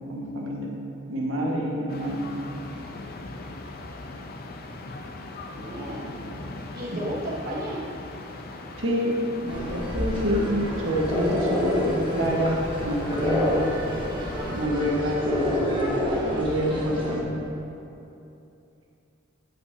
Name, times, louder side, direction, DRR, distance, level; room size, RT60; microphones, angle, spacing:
voice 1, 0.1-0.7 1.1-2.2 6.9-7.0 8.8-10.5 10.8-13.6 14.5-15.9 16.3-17.3, equal, 85° right, -3 dB, 1.6 m, -27 dB
sound 1, 1.9-14.7, left 2 dB, 50° left, 0.6 m, -40 dB
voice 2, 5.5-6.2 6.7-7.8, equal, 55° right, -6 dB, 1.1 m, -33 dB
sound 2, 9.5-17.2, equal, 25° right, 1.3 m, -33 dB
sound 3, 11.1-16.2, left 1 dB, 10° left, 1.5 m, -28 dB
16.0 x 5.5 x 2.8 m, 2.8 s
head